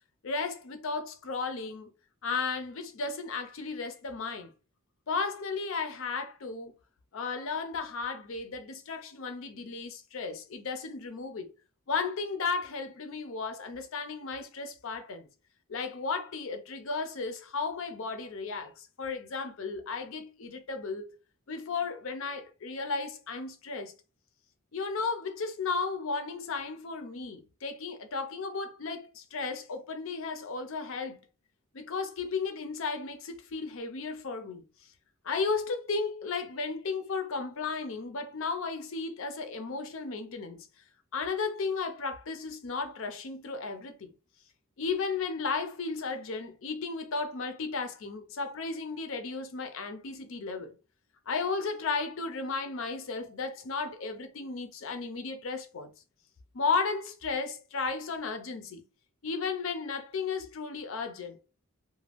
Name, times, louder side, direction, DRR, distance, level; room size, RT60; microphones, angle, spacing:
voice 1, 0.2-1.9 2.2-4.5 5.1-6.7 7.1-11.5 11.9-15.3 15.7-21.1 21.5-23.9 24.7-31.2 31.7-34.6 35.2-40.7 41.1-44.1 44.8-50.8 51.3-55.9 56.5-58.8 59.2-61.4, left 4 dB, 65° left, 0.5 m, -34 dB
2.4 x 2.2 x 3.4 m
head